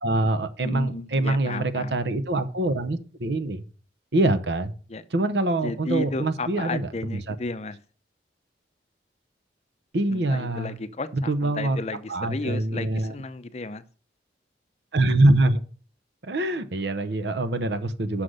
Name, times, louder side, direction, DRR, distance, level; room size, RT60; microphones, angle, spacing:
voice 1, 0.0-3.6 4.1-4.7 5.1-7.4 9.9-10.8 11.1-11.8 12.1-13.2 14.9-15.6 16.2-18.2, right 2 dB, 70° right, 11 dB, 0.9 m, -24 dB
voice 2, 0.6-1.9 4.9-5.0 5.6-7.8 10.1-13.8, left 3 dB, 35° left, 13 dB, 0.6 m, -33 dB
6.4 x 5.9 x 6.5 m, 0.40 s
head